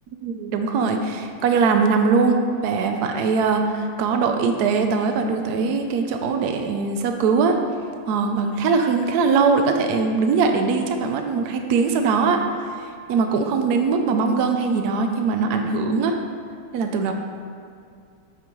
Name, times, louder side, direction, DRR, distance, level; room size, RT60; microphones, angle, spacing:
voice 1, 0.2-7.6 8.1-12.4 13.1-16.2 16.7-17.1, right 4 dB, 90° right, 5 dB, 0.8 m, -21 dB
8.4 x 6.4 x 3.1 m, 2.3 s
omnidirectional pair, 2.3 m